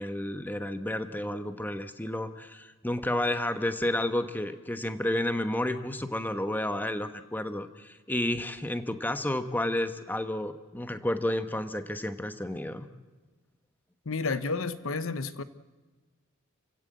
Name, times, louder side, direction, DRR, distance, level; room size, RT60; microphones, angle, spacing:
voice 1, 0.0-12.9, left 1 dB, 10° left, 1.2 m, -31 dB
voice 2, 14.1-15.4, left 4 dB, 70° left, 1.0 m, -31 dB
29.5 x 16.5 x 7.9 m
head